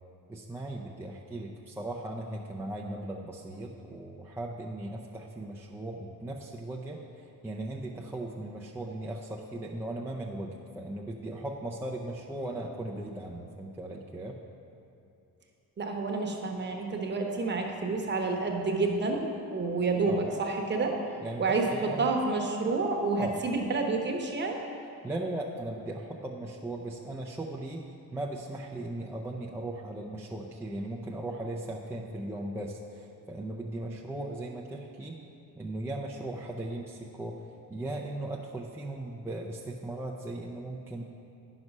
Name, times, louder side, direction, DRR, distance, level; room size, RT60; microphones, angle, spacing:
voice 1, 0.3-7.0 7.4-14.4 20.1-20.2 21.2-22.1 23.2-23.4 25.0-27.8 28.1-35.2 35.5-37.4 37.7-41.0, right 1 dB, 5° right, -3 dB, 0.5 m, -37 dB
voice 2, 15.8-21.0 21.4-24.6, right 3 dB, 30° right, 1 dB, 1.1 m, -29 dB
9.8 x 6.1 x 5.4 m, 2.6 s
cardioid pair, 130°, 34 cm